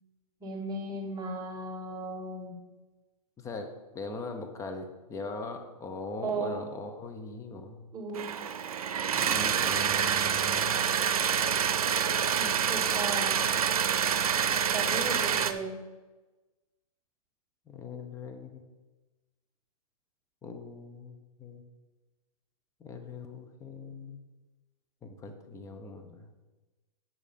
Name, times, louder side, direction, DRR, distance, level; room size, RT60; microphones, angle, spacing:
voice 1, 0.4-2.5 6.2-6.6 7.9-8.3 12.4-13.4 14.7-15.8, right 3 dB, 20° right, -2 dB, 2.3 m, -36 dB
voice 2, 3.4-3.7 3.9-7.9 9.1-10.8 14.9-15.5 17.7-18.6 20.4-21.6 22.8-24.2 25.0-26.3, left 3 dB, 15° left, 5 dB, 1.1 m, -41 dB
sound 1, 8.1-15.5, right 8 dB, 70° right, 0.8 m, -27 dB
8.8 x 6.6 x 5.3 m, 1.2 s
hypercardioid pair, 130°, 19 cm